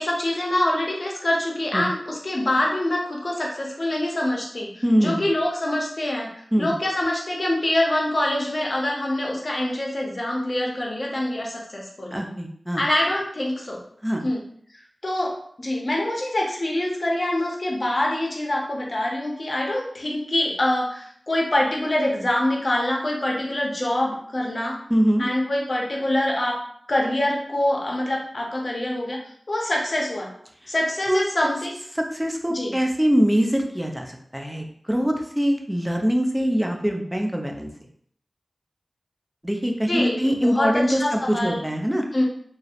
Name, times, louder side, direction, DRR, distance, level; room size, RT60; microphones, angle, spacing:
voice 1, 0.0-6.3 6.6-12.2 12.8-13.8 14.2-14.4 15.0-24.8 25.2-26.6 26.9-29.2 29.5-30.3 30.7-31.7 32.5-32.7 39.9-41.7 42.1-42.2, left 1 dB, 50° left, -1 dB, 0.6 m, -25 dB
voice 2, 4.8-5.2 6.5-6.7 12.1-12.8 14.0-14.2 24.9-25.3 30.6-30.7 31.1-31.2 32.1-37.7 39.4-42.0, equal, 10° right, 2 dB, 0.4 m, -23 dB
2.7 x 2.0 x 2.4 m, 0.64 s
wide cardioid pair, 50°, 0 cm